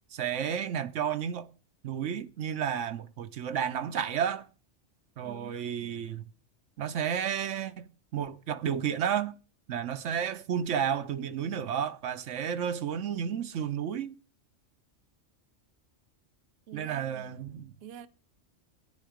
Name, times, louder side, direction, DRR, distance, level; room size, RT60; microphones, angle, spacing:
voice 1, 0.1-1.5 1.8-4.5 5.2-6.2 6.8-9.3 9.7-14.2 16.7-17.7, right 8 dB, 75° right, 1.1 m, -32 dB
voice 2, 5.2-6.1 16.7-17.4 17.8-18.1, right 10 dB, 60° right, 0.9 m, -48 dB
10.5 x 10.5 x 5.0 m
omnidirectional pair, 1.3 m